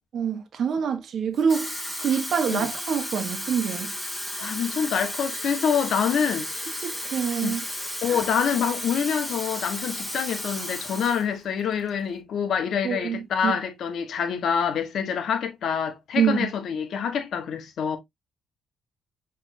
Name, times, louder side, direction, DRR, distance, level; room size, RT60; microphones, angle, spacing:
voice 1, 0.1-1.7 2.0-3.9 6.8-7.6 8.1-8.2 12.8-13.6 16.2-16.5, right 7 dB, 60° right, 1.1 m, -26 dB
Water tap faucet / Fill (with liquid), 1.3-11.3 11.6-11.9, equal, 5° left, 1.7 m, -33 dB
voice 2, 4.4-6.5 7.4-7.6 8.0-18.0, left 7 dB, 65° left, 1.1 m, -26 dB
5.7 x 3.4 x 2.6 m
cardioid pair, 90°, 0 cm